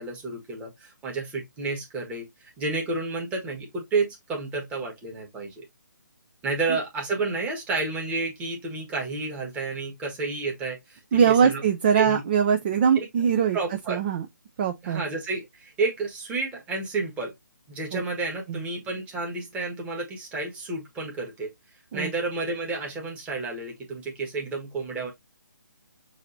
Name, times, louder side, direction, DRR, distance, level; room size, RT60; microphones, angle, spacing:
voice 1, 0.0-2.3 2.6-5.6 6.4-11.6 11.9-12.2 12.9-13.1 13.5-14.0 14.8-17.3 17.7-21.5 21.9-25.1, right 3 dB, 10° right, 1.4 m, -30 dB
voice 2, 11.1-13.6 13.9-14.2 14.6-15.0 17.9-18.0 21.9-22.1, right 7 dB, 30° right, 0.5 m, -22 dB
6.4 x 2.8 x 2.6 m
figure-of-eight pair, 150°, 10 cm